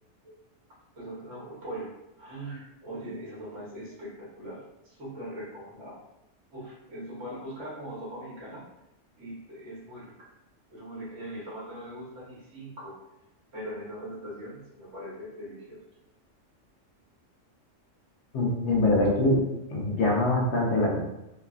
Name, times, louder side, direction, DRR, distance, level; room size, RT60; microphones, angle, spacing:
voice 1, 0.9-6.0 6.5-8.6 9.2-10.3 10.7-13.0 13.5-15.8, right 1 dB, 70° right, -6 dB, 1.3 m, -41 dB
voice 2, 18.3-19.4 19.7-21.0, left 2 dB, 65° left, -3 dB, 0.9 m, -24 dB
3.1 x 2.2 x 2.3 m, 0.91 s
omnidirectional pair, 1.3 m